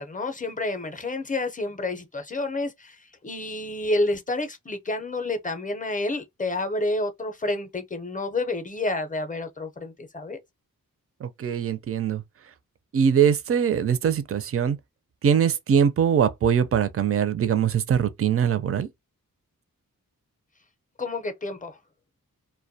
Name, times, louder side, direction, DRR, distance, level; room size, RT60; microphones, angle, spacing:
voice 1, 0.0-10.4 21.0-21.8, left 2 dB, 25° left, 0.5 m, -29 dB
voice 2, 11.2-12.2 12.9-14.8 15.2-18.9, right 8 dB, 40° right, 0.4 m, -22 dB
2.2 x 2.2 x 2.6 m
cardioid pair, 55°, 36 cm